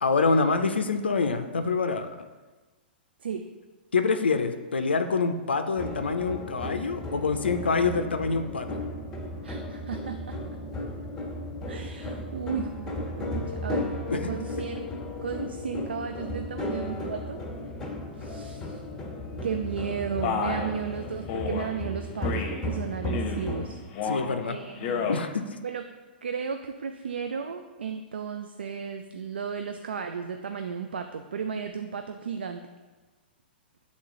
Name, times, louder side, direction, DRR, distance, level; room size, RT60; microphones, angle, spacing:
voice 1, 0.0-2.3 3.9-8.8 14.1-14.3 24.0-24.6 25.1-25.4, left 4 dB, 85° left, 8 dB, 0.4 m, -26 dB
sound 1, 5.7-23.8, left 1 dB, 10° left, 1.3 m, -35 dB
voice 2, 9.4-10.4 11.7-14.9 15.2-17.5 18.2-18.8 19.4-23.8 24.4-25.2 25.6-25.8 26.2-32.7, right 6 dB, 80° right, 6 dB, 0.4 m, -34 dB
Male speech man speaking, 20.2-20.7 21.3-21.7 22.2-22.6 23.1-23.5 23.9-24.3 24.7-25.2, left 6 dB, 40° left, 0.8 m, -30 dB
7.7 x 3.8 x 3.7 m, 1.3 s
hypercardioid pair, 115°, 6 cm